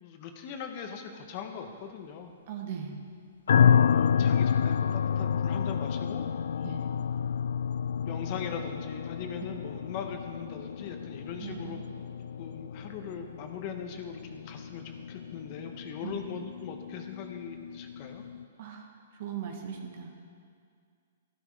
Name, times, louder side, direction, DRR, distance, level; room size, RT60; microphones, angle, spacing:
voice 1, 0.0-2.3 3.7-6.3 6.5-6.7 8.0-11.8 12.4-18.2, left 7 dB, 40° left, 5 dB, 1.3 m, -40 dB
voice 2, 2.5-2.9 6.6-6.9 11.4-11.8 16.0-16.2 18.6-20.1, right 8 dB, 55° right, 2 dB, 2.0 m, -39 dB
sound 1, 3.5-18.4, left 7 dB, 75° left, 0.3 m, -29 dB
13.0 x 12.0 x 4.9 m, 2.2 s
hypercardioid pair, 140°, 0 cm